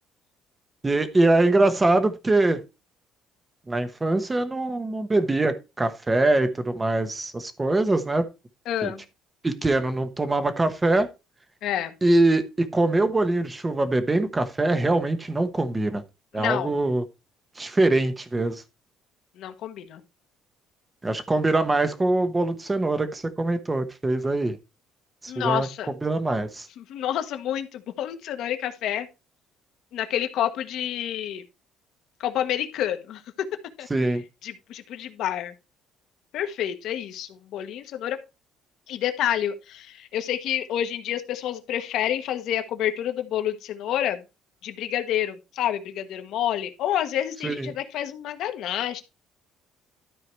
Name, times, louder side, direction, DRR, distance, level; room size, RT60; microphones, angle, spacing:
voice 1, 0.8-2.6 3.7-8.2 8.8-8.9 9.4-11.1 12.0-16.0 16.3-17.0 17.6-18.6 21.0-24.6 25.2-25.7 26.0-26.7 33.9-34.2 47.4-47.7, right 2 dB, 15° right, 1.0 m, -23 dB
voice 2, 8.7-9.0 11.6-11.9 16.3-16.7 19.4-20.0 25.3-25.9 26.8-29.1 29.9-31.4 32.2-33.2 33.8-33.9 34.4-35.5 36.3-38.2 38.9-44.2 44.6-49.0, left 11 dB, 65° left, 1.3 m, -28 dB
12.5 x 4.8 x 4.5 m
cardioid pair, 155°, 0 cm